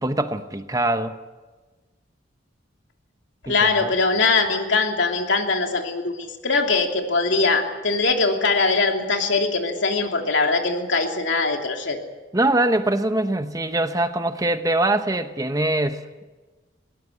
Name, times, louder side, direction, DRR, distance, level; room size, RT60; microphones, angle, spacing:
voice 1, 0.0-1.2 3.5-3.9 12.3-16.2, right 1 dB, 20° right, 9 dB, 0.9 m, -23 dB
voice 2, 3.4-12.0, left 3 dB, 75° left, 3 dB, 2.9 m, -22 dB
21.5 x 18.5 x 8.1 m, 1.3 s
head